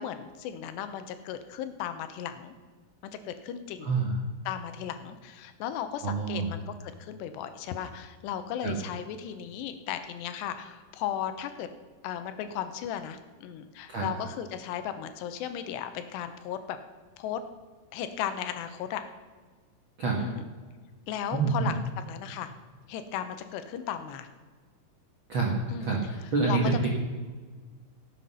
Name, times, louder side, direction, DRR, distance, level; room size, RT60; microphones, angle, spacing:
voice 1, 0.0-2.5 3.0-3.9 4.5-11.7 12.0-16.8 17.2-17.4 17.9-19.0 20.2-20.4 21.1-21.8 22.1-22.5 22.9-24.3 25.7-25.9 26.5-26.6, left 9 dB, 80° left, 10 dB, 2.9 m, -36 dB
voice 2, 3.8-4.2 6.0-6.5 8.6-8.7 13.9-14.0 20.0-20.2 21.3-21.7 25.3-26.0 26.3-26.9, right 4 dB, 65° right, -2 dB, 1.2 m, -27 dB
17.5 x 7.7 x 5.5 m, 1.5 s
omnidirectional pair, 4.9 m